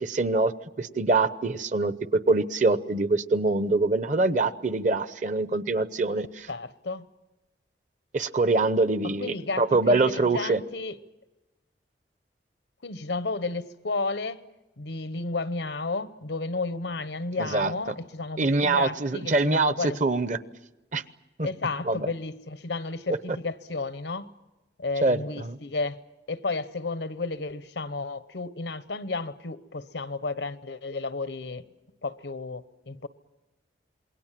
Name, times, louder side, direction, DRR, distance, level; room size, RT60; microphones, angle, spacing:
voice 1, 0.0-6.5 8.1-10.6 17.4-17.7 18.4-19.7 20.0-20.4 20.9-21.0 21.4-21.5 21.9-22.1 25.0-25.6, right 3 dB, 45° right, 0.8 m, -24 dB
voice 2, 6.5-7.0 9.0-11.0 12.8-14.4 14.8-20.0 21.4-24.3 24.8-26.0 26.3-31.6 32.0-33.1, left 3 dB, 90° left, 1.0 m, -32 dB
27.5 x 22.0 x 7.5 m
head